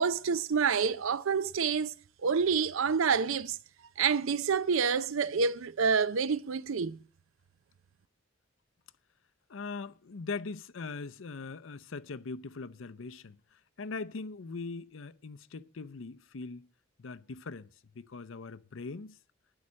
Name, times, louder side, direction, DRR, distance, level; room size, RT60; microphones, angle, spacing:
voice 1, 0.0-1.9 2.2-3.6 4.0-7.0, right 6 dB, 75° right, 0.5 m, -28 dB
voice 2, 9.5-16.7 17.0-19.2, left 4 dB, 70° left, 0.6 m, -41 dB
12.5 x 9.8 x 6.3 m
head